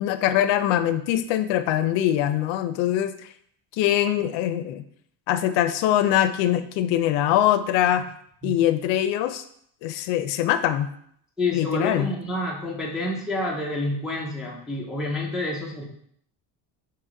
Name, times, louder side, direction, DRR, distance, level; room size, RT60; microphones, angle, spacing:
voice 1, 0.0-3.3 3.8-4.8 5.3-8.1 8.4-9.4 9.8-10.9 11.5-12.1, left 11 dB, 75° left, 11 dB, 0.5 m, -23 dB
voice 2, 11.4-15.8, left 2 dB, ahead, -3 dB, 0.3 m, -28 dB
4.8 x 2.9 x 3.7 m, 0.66 s
cardioid pair, 165°, 44 cm